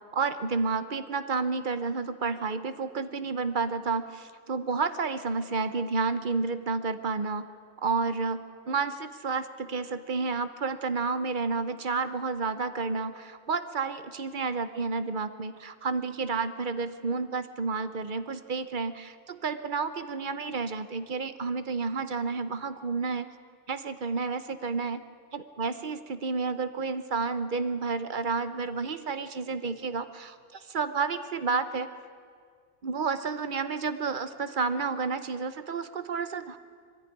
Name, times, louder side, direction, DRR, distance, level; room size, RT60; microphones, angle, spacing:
voice 1, 0.1-7.5 7.8-23.3 23.7-25.0 25.3-31.9 32.8-36.6, right 4 dB, 40° right, 12 dB, 0.9 m, -30 dB
21.0 x 15.0 x 10.0 m, 2.1 s
omnidirectional pair, 1.6 m